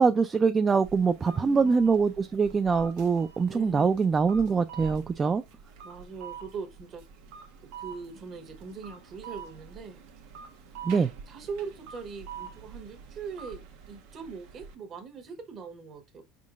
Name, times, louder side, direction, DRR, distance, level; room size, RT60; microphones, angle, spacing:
voice 1, 0.0-5.4 10.8-11.1, right 5 dB, 25° right, 0.3 m, -24 dB
sound 1, 0.8-14.8, right 6 dB, 70° right, 1.0 m, -46 dB
voice 2, 1.2-1.7 3.5-3.9 5.8-7.0 7.7-10.0 11.3-13.6 13.9-16.2, right 5 dB, 40° right, 1.2 m, -41 dB
4.5 x 3.7 x 2.4 m
supercardioid pair, 110°, 0 cm